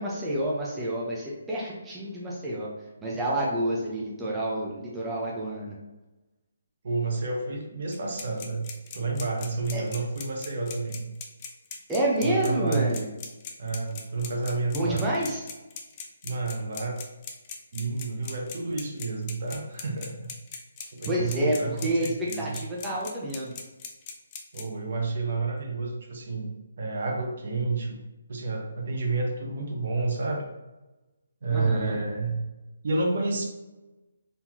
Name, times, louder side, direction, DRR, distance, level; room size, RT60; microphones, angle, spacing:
voice 1, 0.0-2.7 3.0-5.8 9.7-9.8 11.9-13.1 14.7-15.4 21.1-21.6 21.8-22.1 22.4-23.5 31.5-32.0, right 1 dB, 10° right, -5 dB, 0.9 m, -28 dB
voice 2, 6.8-11.1 12.2-12.9 13.6-15.1 16.2-17.0 17.7-20.3 20.9-22.6 24.5-26.5 26.8-28.0 28.3-30.5 31.4-32.4 32.8-33.4, right 3 dB, 60° right, 0 dB, 1.0 m, -30 dB
sound 1, 7.9-24.6, left 7 dB, 30° left, 0.6 m, -39 dB
4.2 x 3.8 x 2.9 m, 1.1 s
hypercardioid pair, 150°, 0 cm